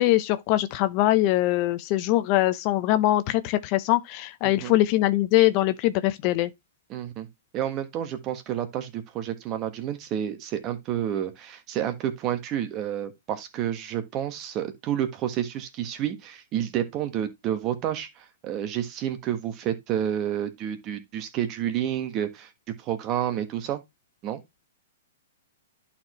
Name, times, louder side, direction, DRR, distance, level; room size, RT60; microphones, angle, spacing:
voice 1, 0.0-6.5, left 15 dB, 40° left, 0.7 m, -22 dB
voice 2, 6.9-7.3 7.5-22.5 22.8-23.8 24.2-24.4, right 10 dB, 30° right, 1.5 m, -30 dB
11.5 x 4.4 x 3.1 m
hypercardioid pair, 125°, 0 cm